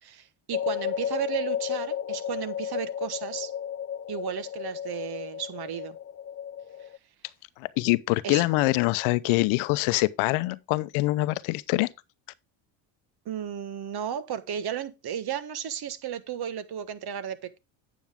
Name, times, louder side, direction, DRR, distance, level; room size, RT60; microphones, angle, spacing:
voice 1, 0.0-3.5 4.1-6.0 8.2-8.4 13.2-17.6, right 9 dB, 50° right, 1.4 m, -34 dB
sound 1, 0.5-7.0, left 9 dB, 30° left, 0.5 m, -33 dB
voice 2, 7.6-11.9, left 20 dB, 75° left, 0.8 m, -24 dB
9.2 x 7.3 x 3.5 m
supercardioid pair, 75°, 49 cm